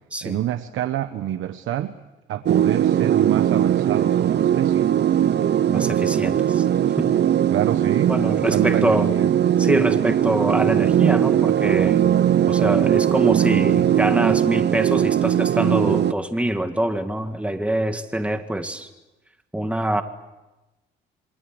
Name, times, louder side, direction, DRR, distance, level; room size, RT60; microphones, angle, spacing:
voice 1, 0.2-1.9 2.3-4.9 7.5-9.3, right 12 dB, 80° right, 10 dB, 1.2 m, -27 dB
sound 1, 2.5-16.1, right 10 dB, 60° right, 0.9 m, -19 dB
voice 2, 5.7-6.7 7.0-7.2 8.1-9.1 9.6-12.2 12.5-18.9 19.5-20.0, right 1 dB, 5° right, 7 dB, 2.0 m, -24 dB
27.0 x 25.0 x 8.0 m, 1.1 s
cardioid pair, 90°, 20 cm